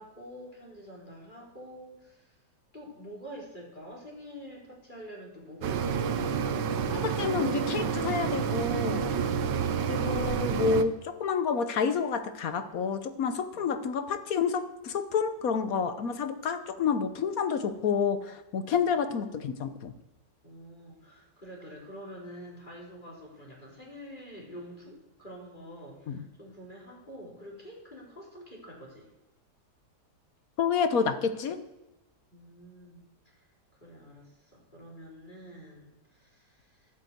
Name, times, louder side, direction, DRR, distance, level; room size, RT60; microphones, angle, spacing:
voice 1, 0.0-2.3 2.7-6.6 9.0-10.6 13.5-13.7 18.6-18.8 20.4-29.1 32.3-33.0 33.4-33.5 33.8-36.9, equal, 25° left, -2 dB, 3.5 m, -47 dB
sound 1, 5.6-10.8, right 7 dB, 85° right, 1.4 m, -29 dB
voice 2, 6.9-9.1 9.9-19.9 26.1-26.2 30.6-31.6, left 6 dB, 60° left, 10 dB, 1.3 m, -29 dB
11.0 x 8.9 x 7.9 m, 0.96 s
omnidirectional pair, 1.8 m